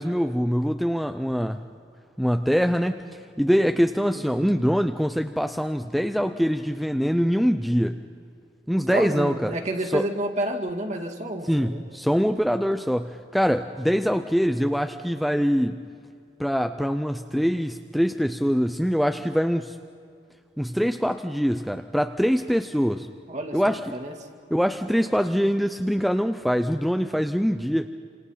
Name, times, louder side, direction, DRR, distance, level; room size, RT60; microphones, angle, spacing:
voice 1, 0.0-1.6 2.2-8.0 8.7-9.5 9.9-10.1 11.5-15.8 16.4-19.8 20.6-23.1 23.5-24.0 24.5-27.9, equal, ahead, 7 dB, 0.5 m, -24 dB
voice 2, 4.1-4.5 8.9-11.8 23.3-24.1, right 1 dB, 40° right, 3 dB, 2.1 m, -30 dB
28.5 x 27.0 x 5.7 m, 2.4 s
head